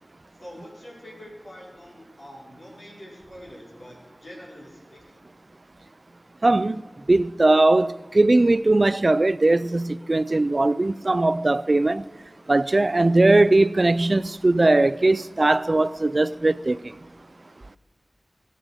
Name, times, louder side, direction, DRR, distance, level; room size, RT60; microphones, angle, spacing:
voice 1, 0.4-5.2, equal, 70° left, 4.7 m, -44 dB
voice 2, 6.4-6.8 7.1-12.0 12.5-16.8, right 2 dB, 50° right, 0.4 m, -19 dB
21.0 x 7.7 x 4.9 m
wide cardioid pair, 60°, 0 cm